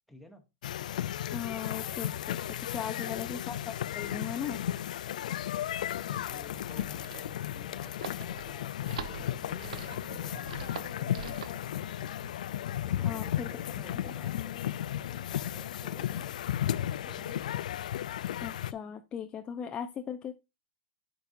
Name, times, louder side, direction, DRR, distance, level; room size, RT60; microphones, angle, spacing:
voice 1, 0.1-0.4 5.5-11.8 12.8-16.3 16.8-17.6, left 1 dB, ahead, 3 dB, 1.4 m, -53 dB
sound 1, 0.6-18.7, left 11 dB, 80° left, 0.3 m, -34 dB
voice 2, 1.3-4.6 13.0-13.5 13.9-14.1 18.4-20.3, left 8 dB, 25° left, 7 dB, 0.6 m, -38 dB
sound 2, 6.6-11.6, right 7 dB, 80° right, 1.0 m, -44 dB
Musical instrument, 8.9-13.7, right 8 dB, 50° right, 0.9 m, -54 dB
9.0 x 5.4 x 2.6 m, 0.24 s
hypercardioid pair, 135°, 4 cm